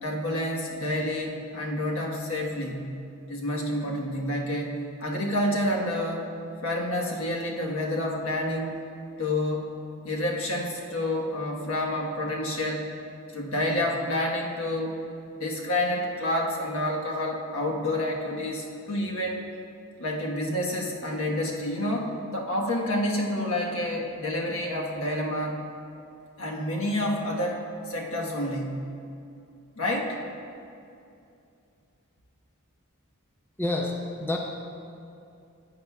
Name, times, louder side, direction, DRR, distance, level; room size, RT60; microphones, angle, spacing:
voice 1, 0.0-2.9 3.3-6.3 6.6-8.8 9.2-9.7 10.0-12.9 13.3-15.0 15.4-19.4 20.0-25.6 26.4-28.8 29.8-30.2, left 1 dB, 70° left, -1 dB, 1.3 m, -29 dB
voice 2, 33.6-34.4, left 2 dB, 10° left, 0 dB, 0.6 m, -28 dB
15.0 x 8.7 x 2.4 m, 2.6 s
head